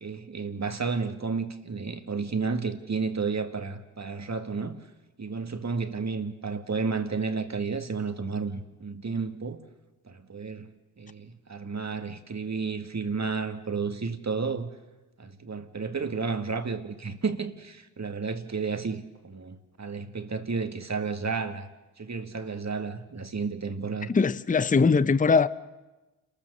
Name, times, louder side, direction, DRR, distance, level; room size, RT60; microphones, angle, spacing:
voice 1, 0.0-4.8 5.2-9.6 10.1-10.7 11.0-14.7 15.2-21.7 22.0-24.1, right 4 dB, 35° right, 2.0 m, -32 dB
voice 2, 24.1-25.5, left 4 dB, 15° left, 0.7 m, -21 dB
29.0 x 14.0 x 6.7 m
supercardioid pair, 45°, 46 cm